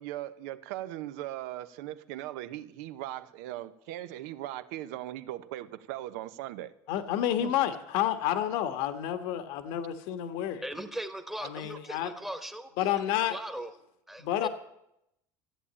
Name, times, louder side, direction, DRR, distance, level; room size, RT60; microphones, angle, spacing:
voice 1, 0.0-6.8 7.4-7.5, right 14 dB, 80° right, 13 dB, 0.8 m, -39 dB
voice 2, 6.9-10.6 11.4-12.1 12.8-13.4 14.2-14.5, left 11 dB, 70° left, 10 dB, 1.4 m, -30 dB
voice 3, 10.6-12.7 13.3-13.7 14.1-14.5, right 1 dB, 5° right, 9 dB, 1.2 m, -38 dB
14.0 x 8.7 x 8.6 m, 0.81 s
cardioid pair, 140°, 9 cm